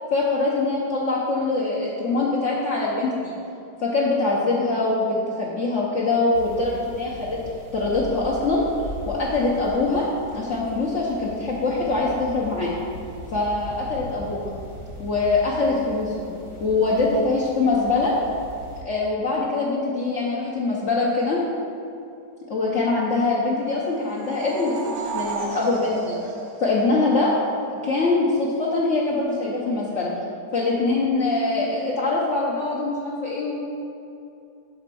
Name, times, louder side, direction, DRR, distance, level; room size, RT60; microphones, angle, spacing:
voice 1, 0.1-3.3 3.8-7.4 7.7-8.6 9.1-10.1 10.3-12.7 13.3-14.5 15.0-16.3 16.6-18.1 18.8-21.4 22.5-26.1 26.6-27.3 27.8-30.1 30.5-33.6, left 3 dB, 55° left, -5 dB, 1.1 m, -23 dB
sound 1, 6.3-18.8, equal, 30° right, 0.6 m, -40 dB
sound 2, 23.9-27.5, right 4 dB, 80° right, 1.3 m, -33 dB
7.6 x 4.3 x 6.0 m, 2.7 s
omnidirectional pair, 1.8 m